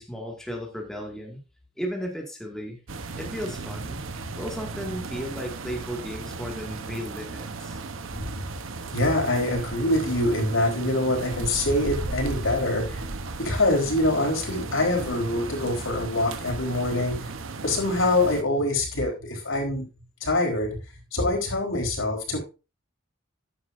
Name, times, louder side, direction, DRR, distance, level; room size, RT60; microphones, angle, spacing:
voice 1, 0.0-1.4 1.8-2.8 3.2-4.0 4.4-7.8, equal, 5° left, 1 dB, 2.1 m, -35 dB
sound 1, 2.9-18.4, right 3 dB, 80° right, 1.0 m, -36 dB
voice 2, 8.9-13.1 13.4-17.3 17.6-19.8 20.2-20.8 21.1-22.4, left 1 dB, 85° left, 1 dB, 4.2 m, -25 dB
12.0 x 9.5 x 2.6 m, 0.29 s
head